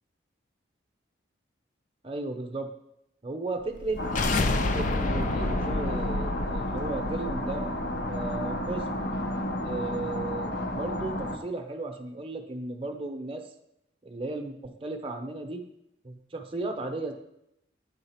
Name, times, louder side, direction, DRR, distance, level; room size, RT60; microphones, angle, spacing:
voice 1, 2.0-2.7 3.2-4.0 4.6-7.7 8.1-9.0 9.6-13.4 14.0-15.6 16.0-17.1, right 2 dB, 30° right, 3 dB, 0.8 m, -35 dB
sound 1, 3.7-8.8, left 3 dB, 40° left, 0.4 m, -31 dB
sound 2, 4.0-11.4, left 1 dB, 60° left, 0.9 m, -32 dB
8.9 x 3.9 x 5.8 m, 0.81 s
head